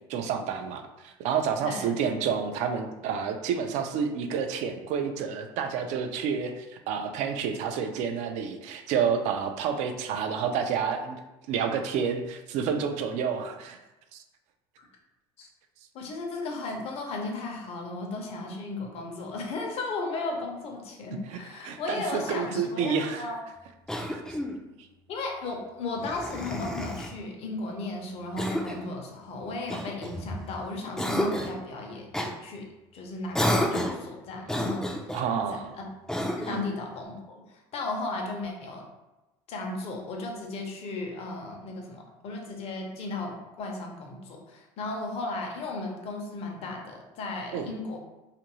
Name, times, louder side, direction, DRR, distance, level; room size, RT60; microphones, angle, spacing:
voice 1, 0.1-11.2 11.5-13.8 14.1-14.2 21.3-21.4 21.6-23.2 24.1-24.2 35.1-35.7 36.5-36.6 47.5-47.7, right 6 dB, 65° right, 6 dB, 0.4 m, -29 dB
voice 2, 15.9-23.4 25.1-32.6 32.9-34.8 35.5-35.9 36.4-38.9 39.5-48.0, left 2 dB, 50° left, 1 dB, 0.7 m, -35 dB
Cough, 23.9-24.6 26.0-27.2 28.4-28.9 29.7-30.5 31.0-31.6 32.1-32.3 33.3-34.0 34.5-35.2 36.1-36.6, equal, 5° left, 0.4 m, -30 dB
2.6 x 2.5 x 3.0 m, 1.0 s
supercardioid pair, 100°, 13 cm